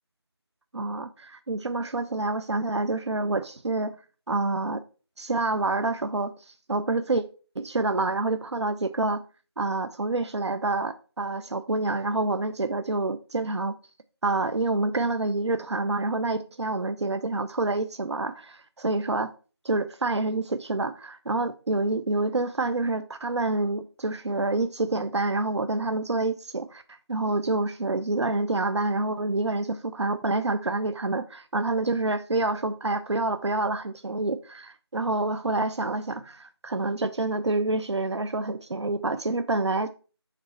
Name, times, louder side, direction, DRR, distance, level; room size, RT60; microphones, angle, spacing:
voice 1, 0.7-4.0 4.3-4.8 5.2-7.2 7.6-9.2 9.6-13.8 14.2-19.3 19.6-39.9, right 2 dB, 80° right, 0.5 m, -27 dB
6.6 x 4.2 x 4.5 m
figure-of-eight pair, 170°, 14 cm